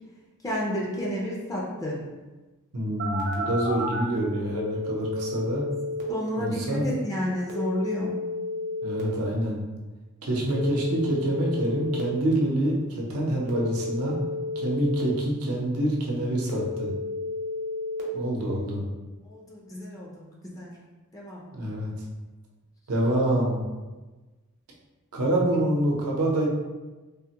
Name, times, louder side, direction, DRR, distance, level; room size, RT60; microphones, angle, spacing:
voice 1, 0.4-2.0 6.1-8.1 19.2-20.3 20.6-20.7 21.1-21.4, equal, 15° left, -4 dB, 0.4 m, -31 dB
voice 2, 2.7-5.6 6.4-6.9 8.8-9.6 10.2-14.2 14.6-16.9 18.1-18.8 21.5-21.9 22.9-23.6 25.1-26.5, right 1 dB, 90° right, -2 dB, 0.7 m, -26 dB
Telephone, 3.0-4.0 4.5-6.0 7.5-9.0 10.5-12.0 13.5-15.0 16.5-18.0, left 2 dB, 55° right, 0.7 m, -32 dB
3.4 x 2.1 x 2.8 m, 1.2 s
head